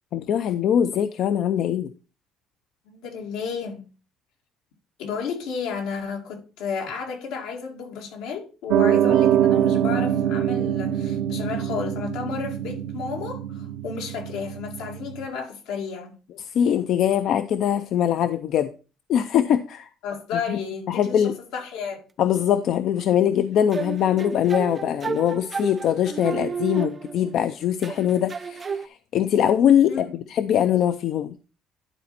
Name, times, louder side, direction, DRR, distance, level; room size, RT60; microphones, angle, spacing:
voice 1, 0.1-1.9 16.4-18.7 19.1-19.9 20.5-20.6 20.9-21.3 22.2-31.4, left 9 dB, 60° left, 0.5 m, -22 dB
voice 2, 2.9-3.8 5.0-16.1 20.0-22.0 29.9-30.2, left 6 dB, 90° left, 2.2 m, -32 dB
Piano, 8.7-15.3, right 10 dB, 80° right, 0.7 m, -24 dB
sound 1, 23.7-27.4 27.8-28.9, right 5 dB, 30° right, 0.4 m, -32 dB
11.0 x 4.3 x 4.2 m
cardioid pair, 120°, 0 cm